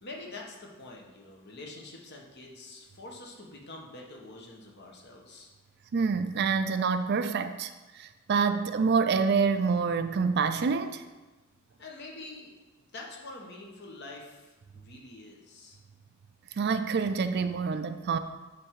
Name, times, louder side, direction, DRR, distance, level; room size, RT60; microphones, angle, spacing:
voice 1, 0.0-5.5 11.8-12.5 12.9-15.8, left 2 dB, 55° left, -1 dB, 1.3 m, -46 dB
voice 2, 5.9-11.0 16.6-18.2, right 5 dB, 50° right, 10 dB, 0.4 m, -27 dB
9.7 x 3.4 x 4.7 m, 1.2 s
head